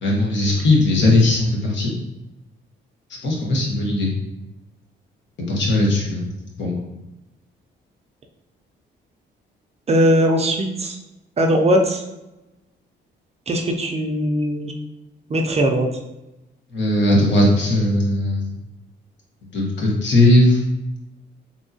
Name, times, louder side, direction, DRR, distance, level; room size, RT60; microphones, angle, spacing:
voice 1, 0.0-1.9 3.2-4.2 5.5-6.3 6.6-6.8 16.7-18.6 19.5-20.6, left 1 dB, 65° left, -2 dB, 1.2 m, -18 dB
voice 2, 9.9-11.0 11.4-12.0 13.5-14.7 15.3-15.9, equal, 30° right, 3 dB, 0.5 m, -19 dB
3.6 x 2.7 x 2.7 m, 0.96 s
cardioid pair, 90°, 20 cm